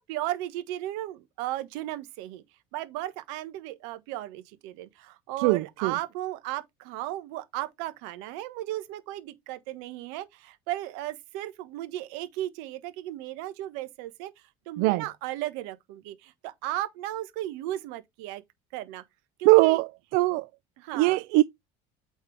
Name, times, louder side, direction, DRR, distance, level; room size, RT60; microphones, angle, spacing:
voice 1, 0.0-2.4 2.7-14.3 14.7-18.4 18.7-19.0 19.4-19.8 20.8-21.2, right 14 dB, 90° right, 1.3 m, -35 dB
voice 2, 5.4-5.9 14.8-15.0 19.4-20.5 20.9-21.4, right 21 dB, 70° right, 0.4 m, -21 dB
8.7 x 4.5 x 3.3 m
cardioid pair, 175°, 16 cm